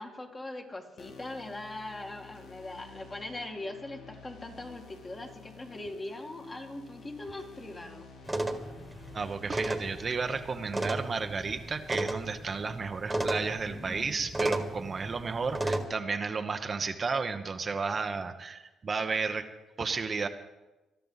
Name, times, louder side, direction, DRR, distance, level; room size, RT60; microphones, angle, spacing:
voice 1, 0.0-8.1, left 2 dB, 25° left, 2 dB, 2.2 m, -41 dB
sound 1, 1.0-12.0, left 5 dB, 80° left, 2.0 m, -52 dB
sound 2, 8.2-15.8, right 2 dB, 10° right, 1.8 m, -34 dB
voice 2, 9.1-19.5 19.8-20.3, right 4 dB, 35° right, 6 dB, 0.9 m, -33 dB
21.0 x 12.5 x 4.0 m, 1.1 s
cardioid pair, 90°, 0 cm